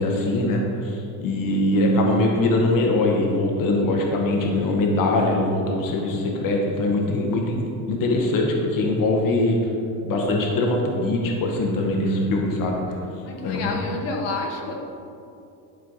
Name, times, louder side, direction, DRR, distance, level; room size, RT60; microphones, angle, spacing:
voice 1, 0.0-7.6 7.9-9.6 10.0-13.0 13.4-13.8, left 2 dB, 45° left, 0 dB, 1.3 m, -22 dB
voice 2, 13.3-14.7, left 3 dB, 70° left, 1 dB, 1.5 m, -29 dB
11.0 x 4.3 x 4.1 m, 2.6 s
cardioid pair, 135°, 44 cm